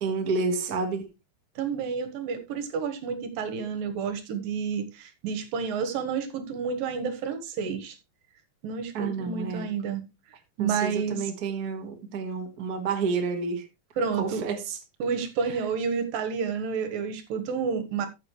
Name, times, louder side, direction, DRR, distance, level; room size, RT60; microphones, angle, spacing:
voice 1, 0.0-1.0 8.9-9.7 10.6-13.7 14.2-14.8, right 4 dB, 40° right, 1.4 m, -29 dB
voice 2, 1.6-8.0 8.6-10.0 10.6-11.3 14.0-14.5 15.0-18.1, right 6 dB, 70° right, 2.9 m, -30 dB
14.5 x 7.2 x 3.1 m
omnidirectional pair, 4.4 m